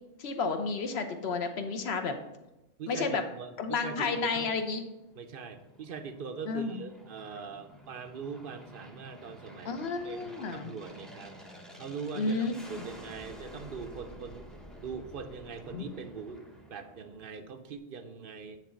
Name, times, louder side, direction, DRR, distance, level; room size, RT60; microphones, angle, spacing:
voice 1, 0.2-2.2 2.9-3.2 3.6-4.8 6.4-6.8 9.6-10.7 12.2-12.9 15.7-15.8, left 4 dB, 55° left, 7 dB, 1.0 m, -31 dB
voice 2, 2.8-4.5 5.2-9.7 10.0-11.4 11.8-14.5 14.8-18.6, right 5 dB, 50° right, 8 dB, 0.7 m, -42 dB
Aircraft, 4.8-17.5, equal, ahead, 0.7 m, -51 dB
9.6 x 4.0 x 5.1 m, 0.96 s
omnidirectional pair, 1.4 m